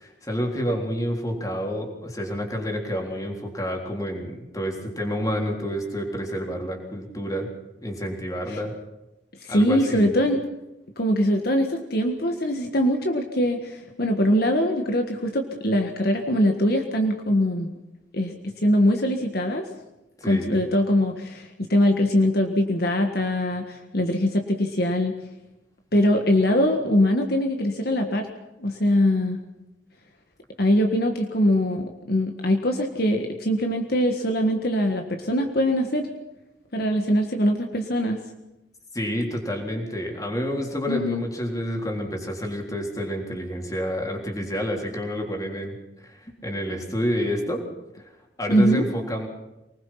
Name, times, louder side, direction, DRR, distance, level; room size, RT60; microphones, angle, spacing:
voice 1, 0.0-7.5 7.8-8.7 9.5-10.1 20.2-20.6 38.9-47.6 48.4-49.3, equal, 20° left, 1 dB, 3.7 m, -29 dB
voice 2, 9.4-10.4 11.0-17.7 18.1-19.7 20.3-25.2 25.9-28.3 28.6-29.4 30.6-36.1 36.7-38.2 40.9-41.2 48.5-48.9, equal, 55° left, 4 dB, 1.7 m, -22 dB
24.5 x 20.0 x 5.8 m, 0.99 s
head